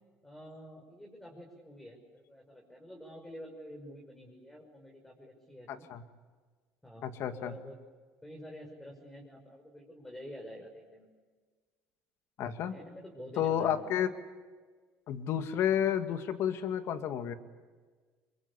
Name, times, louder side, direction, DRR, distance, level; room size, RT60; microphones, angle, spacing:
voice 1, 0.2-5.9 6.8-7.7 8.2-11.1 12.7-13.8, equal, 10° left, 0 dB, 5.9 m, -48 dB
voice 2, 5.7-6.0 7.0-7.6 12.4-12.7 13.4-14.1 15.1-17.3, left 9 dB, 65° left, 8 dB, 2.2 m, -31 dB
26.0 x 23.5 x 8.5 m, 1.4 s
supercardioid pair, 80°, 5 cm